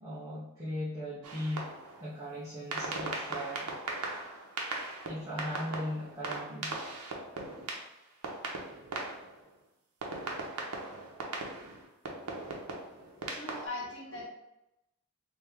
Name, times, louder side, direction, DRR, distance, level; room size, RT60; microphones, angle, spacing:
voice 1, 0.0-1.7 2.0-3.7 5.0-6.8, equal, 15° right, -10 dB, 0.8 m, -38 dB
sound 1, 1.2-2.1 2.7-9.6 10.0-13.7, right 2 dB, 90° right, 0.8 m, -39 dB
voice 2, 13.2-14.2, left 2 dB, 55° left, -4 dB, 1.3 m, -40 dB
3.2 x 2.9 x 3.5 m, 0.90 s
head